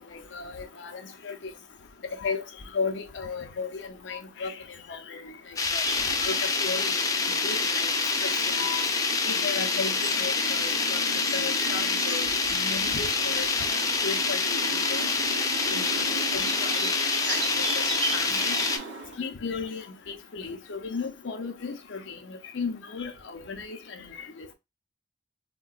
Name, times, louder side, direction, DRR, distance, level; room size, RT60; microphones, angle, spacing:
voice 1, 0.3-1.4 2.2-2.4 2.7-4.5 4.9-5.2 5.7-5.8 6.2-6.9 7.4-7.9 8.2-8.3 8.6-8.8 9.2-11.0 11.3-15.1 15.7-15.9 16.3-18.5 19.2-24.1 24.4-24.5, left 5 dB, 70° left, 0.6 m, -35 dB
sound 1, 5.6-18.8, left 4 dB, 20° left, 0.4 m, -27 dB
sound 2, 5.8-19.2, right 2 dB, 65° right, 0.9 m, -36 dB
3.7 x 2.2 x 2.3 m
head